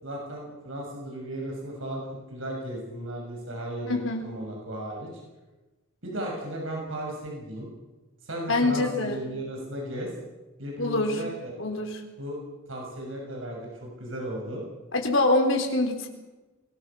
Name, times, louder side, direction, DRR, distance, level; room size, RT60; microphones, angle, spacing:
voice 1, 0.0-5.1 6.0-7.7 8.2-10.1 10.6-11.5 12.2-12.4 12.7-14.6, right 1 dB, 80° right, -1 dB, 6.9 m, -35 dB
voice 2, 3.8-4.3 8.5-9.2 10.8-11.2 11.6-12.0 14.9-16.1, left 2 dB, 80° left, 3 dB, 4.2 m, -25 dB
24.0 x 18.5 x 7.1 m, 1.1 s
head